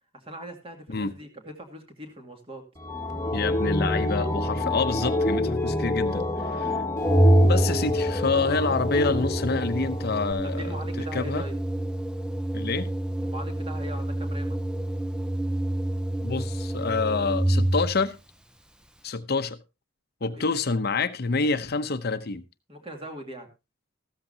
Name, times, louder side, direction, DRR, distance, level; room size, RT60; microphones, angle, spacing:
voice 1, 0.1-2.7 10.4-11.6 13.2-14.6 20.3-20.6 22.7-23.5, equal, 30° right, 2.5 m, -40 dB
sound 1, 2.8-10.3, left 1 dB, 15° left, 1.5 m, -27 dB
voice 2, 3.3-6.8 7.4-10.8 11.1-11.4 12.5-12.9 16.2-18.2 19.0-19.6 20.2-22.4, left 4 dB, 55° left, 0.8 m, -27 dB
Organ, 7.0-18.0, right 1 dB, 5° right, 0.6 m, -26 dB
14.5 x 13.5 x 2.8 m
head